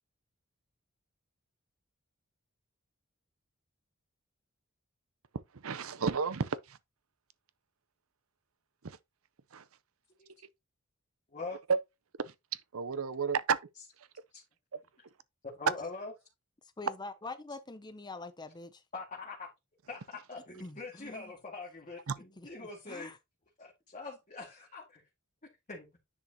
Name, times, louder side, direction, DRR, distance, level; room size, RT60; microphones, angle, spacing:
voice 1, 5.6-6.6 8.8-9.0 9.5-9.6 12.7-13.6 22.1-22.2, right 5 dB, 80° right, 0.7 m, -31 dB
voice 2, 15.4-16.1 18.9-19.5 19.9-23.1 23.6-25.0 25.7-25.9, left 3 dB, 35° left, 2.1 m, -43 dB
voice 3, 16.8-18.8 20.6-21.3 22.4-23.2, left 3 dB, 20° left, 0.6 m, -45 dB
10.0 x 5.0 x 2.9 m
head